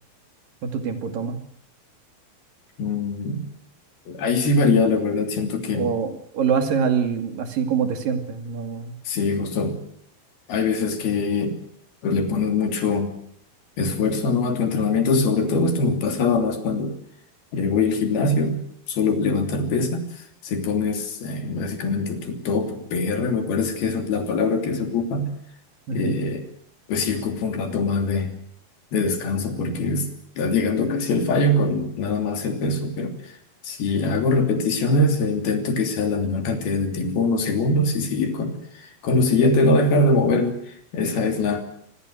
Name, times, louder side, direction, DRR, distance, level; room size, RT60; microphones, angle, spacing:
voice 1, 0.6-1.4 5.7-8.9 25.9-26.2, right 6 dB, 65° right, 6 dB, 4.1 m, -25 dB
voice 2, 2.8-3.5 4.1-5.9 9.0-9.8 10.5-11.6 12.0-13.1 13.8-16.9 17.5-18.6 18.9-25.3 25.9-26.4 26.9-28.3 28.9-30.1 30.4-33.3 33.6-41.8, left 3 dB, 85° left, 5 dB, 5.0 m, -23 dB
26.5 x 21.0 x 6.5 m, 0.66 s
omnidirectional pair, 4.3 m